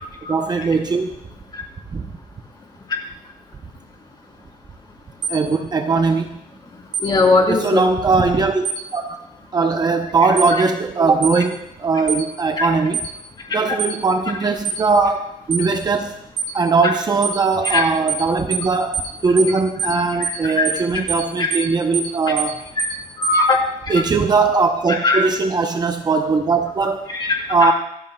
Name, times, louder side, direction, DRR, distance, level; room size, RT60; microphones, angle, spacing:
voice 1, 0.3-1.2 1.9-2.1 5.3-6.4 7.5-8.6 8.9-9.2 9.5-13.1 13.5-16.2 16.5-22.7 23.9-27.1 27.5-27.7, right 4 dB, 25° right, 5 dB, 0.7 m, -19 dB
sound 1, 5.2-5.4 6.9-7.1 8.6-8.8 10.4-10.5 11.2-11.4 12.1-12.2 12.9-13.1 13.8-14.0 14.6-14.8 15.5-15.7 16.4-16.5 17.2-17.4 17.6-17.8 18.1-18.2 18.5-18.7 18.9-19.1 19.4-19.5 19.8-20.0 20.2-20.4 20.6-20.8 21.1-21.2 21.5-21.7 21.9-22.1 22.4-22.5 22.8-23.0 23.2-23.4, right 7 dB, 75° right, 3.7 m, -24 dB
voice 2, 7.0-7.8 12.6-12.7 17.6-17.8 20.6-20.7 23.2-23.6 25.0-25.2 27.1-27.7, left 3 dB, 30° left, 0 dB, 3.4 m, -18 dB
26.5 x 14.5 x 2.3 m, 0.81 s
cardioid pair, 145°, 16 cm